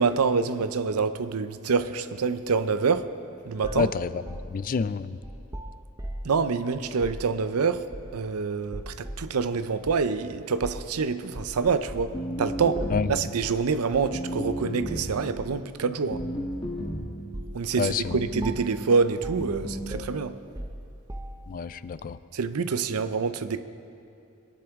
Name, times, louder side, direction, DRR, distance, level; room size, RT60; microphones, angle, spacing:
voice 1, 0.0-3.1 3.4-3.9 6.2-16.2 17.5-20.4 22.3-23.6, right 5 dB, 90° right, 12 dB, 0.6 m, -26 dB
sound 1, 3.6-6.4 6.9-7.3 7.9-8.3 8.7-9.3 9.9-10.0 10.6-10.9 11.3-12.1 12.8-13.1 13.4-13.6 13.9-14.2 14.9-15.6 16.2-16.9 17.3-17.6 17.9-18.1 18.4-18.8 19.2-19.5 19.9-21.6, right 1 dB, 15° right, 0.7 m, -38 dB
voice 2, 3.8-4.1 4.5-5.2 12.9-13.1 17.8-18.2 21.5-22.2, left 5 dB, 40° left, 15 dB, 0.4 m, -28 dB
sound 2, 12.1-13.3 14.1-15.2 16.1-17.2 18.1-18.7 19.4-20.0, equal, 20° left, 1.3 m, -33 dB
22.0 x 10.5 x 3.6 m, 2.8 s
head